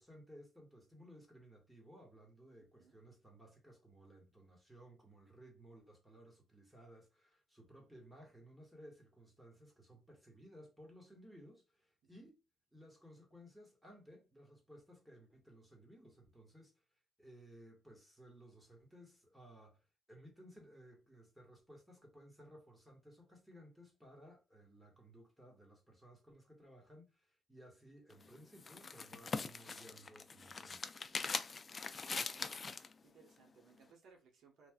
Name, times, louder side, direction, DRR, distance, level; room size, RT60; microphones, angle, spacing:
voice 1, 0.0-12.4 12.7-16.7 17.2-30.8 31.1-31.4, equal, 5° right, 1.5 m, -59 dB
sound 1, 28.1-32.9, left 4 dB, 35° left, 0.3 m, -42 dB
voice 2, 32.2-32.6 33.0-34.7, right 5 dB, 75° right, 1.0 m, -65 dB
3.2 x 2.6 x 2.3 m
cardioid pair, 90°, 0 cm